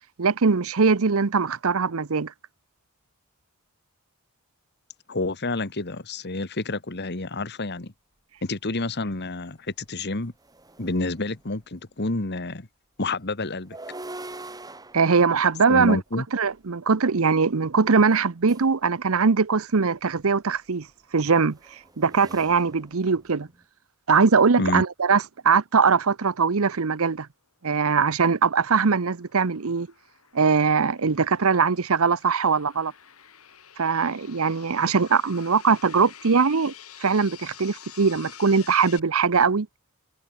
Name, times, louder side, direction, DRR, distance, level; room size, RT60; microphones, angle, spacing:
voice 1, 0.2-2.3 14.9-16.0 16.3-20.9 21.1-21.6 22.0-23.5 24.1-27.3 27.6-29.9 30.3-32.9 33.8-36.7 37.0-39.7, right 5 dB, 70° right, 0.8 m, -21 dB
voice 2, 5.1-7.9 8.4-10.3 10.8-12.7 13.0-13.8 15.7-16.3 24.6-24.8, left 2 dB, 50° left, 1.6 m, -29 dB
sound 1, 9.2-9.3 9.7-11.7 13.5-16.7 18.0-18.8 20.2-23.6, right 2 dB, 15° right, 2.5 m, -44 dB
sound 2, 28.2-39.0, left 9 dB, 75° left, 4.5 m, -48 dB
head